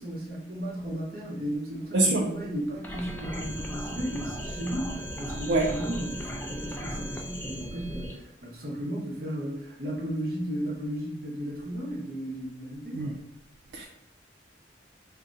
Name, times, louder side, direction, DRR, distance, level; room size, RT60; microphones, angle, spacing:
voice 1, 0.0-13.1, equal, 55° right, -5 dB, 1.0 m, -35 dB
voice 2, 1.9-2.3 5.5-5.7 12.9-13.2 13.7-13.8, right 2 dB, 75° right, 0 dB, 0.4 m, -24 dB
sound 1, 2.8-8.1, equal, 10° left, 0.3 m, -37 dB
2.8 x 2.5 x 3.9 m, 0.85 s
head